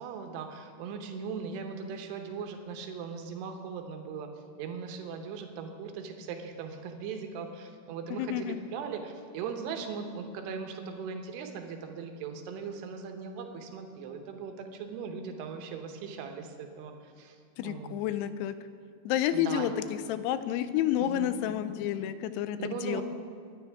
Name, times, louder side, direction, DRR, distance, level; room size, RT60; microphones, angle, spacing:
voice 1, 0.0-4.3 4.6-8.5 8.7-17.4 17.6-18.0 19.3-19.7 21.0-21.6 22.6-23.0, right 6 dB, 80° right, 4 dB, 3.1 m, -39 dB
voice 2, 8.1-8.6 17.6-18.6 19.0-23.0, left 11 dB, 85° left, 12 dB, 2.6 m, -30 dB
23.0 x 10.5 x 3.6 m, 2.2 s
omnidirectional pair, 4.9 m